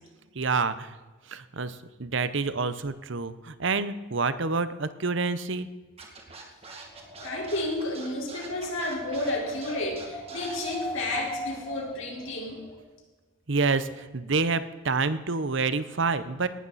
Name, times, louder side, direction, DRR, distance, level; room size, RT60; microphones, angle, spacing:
voice 1, 0.3-0.9 1.3-5.7 13.5-16.5, right 4 dB, 60° right, 13 dB, 0.8 m, -28 dB
Scratching (performance technique), 6.0-10.7, right 4 dB, 30° right, 2.3 m, -44 dB
Wind, 6.7-12.7, left 1 dB, 10° left, 5.2 m, -40 dB
voice 2, 7.2-12.6, left 1 dB, 70° left, -1 dB, 4.4 m, -31 dB
18.5 x 12.0 x 4.2 m, 1.3 s
head